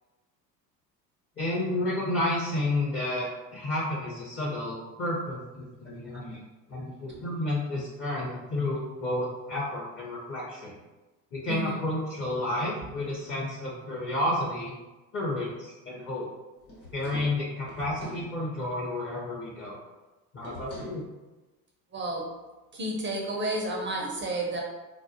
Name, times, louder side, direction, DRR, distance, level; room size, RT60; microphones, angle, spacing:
voice 1, 1.4-6.4 6.7-10.8 11.3-14.8 15.1-16.3 16.9-19.8 20.3-21.0, left 1 dB, 25° left, -5 dB, 0.6 m, -31 dB
sound 1, 16.6-18.3 20.4-21.0, left 1 dB, 90° left, 1.1 m, -43 dB
voice 2, 21.9-22.3 22.7-24.6, right 1 dB, 25° right, -1 dB, 0.4 m, -31 dB
2.2 x 2.2 x 2.5 m, 1.1 s
hypercardioid pair, 65°, 49 cm